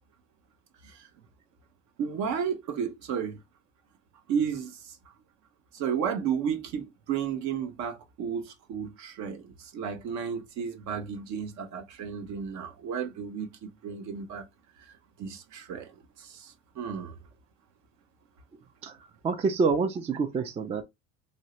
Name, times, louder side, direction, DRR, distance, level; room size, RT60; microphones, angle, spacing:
voice 1, 2.0-3.4 4.3-5.0 5.7-14.5 14.9-15.0 15.2-17.2, right 7 dB, 55° right, 0.9 m, -33 dB
voice 2, 19.2-20.8, right 4 dB, 20° right, 0.4 m, -27 dB
2.9 x 2.7 x 3.0 m
supercardioid pair, 105°, 34 cm